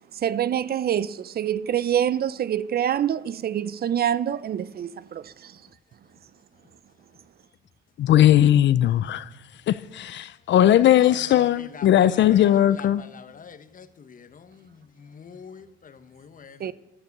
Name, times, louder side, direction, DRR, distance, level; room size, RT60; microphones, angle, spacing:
voice 1, 0.1-5.6 16.6-16.7, right 10 dB, 50° right, 0.6 m, -26 dB
voice 2, 8.0-9.3 9.7-13.0, left 11 dB, 65° left, 0.5 m, -18 dB
voice 3, 10.9-16.6, left 6 dB, 45° left, 1.2 m, -44 dB
13.5 x 11.0 x 6.7 m
cardioid pair, 90°, 20 cm